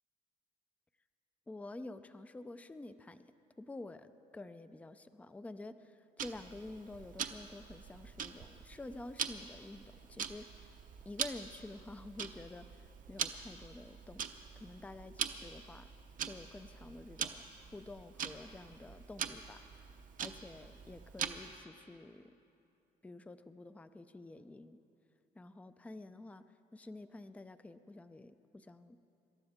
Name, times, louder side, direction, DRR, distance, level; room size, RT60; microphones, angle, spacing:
voice 1, 1.5-3.2 3.6-9.8 10.1-10.7 11.1-14.2 14.6-15.9 16.3-17.4 17.7-19.6 20.2-22.3 23.0-24.8 25.3-26.4 26.7-29.0, left 2 dB, 10° left, 11 dB, 0.5 m, -49 dB
Tick-tock, 6.2-21.6, right 8 dB, 50° right, 0.8 m, -43 dB
26.0 x 12.5 x 3.6 m, 2.7 s
cardioid pair, 110°, 17 cm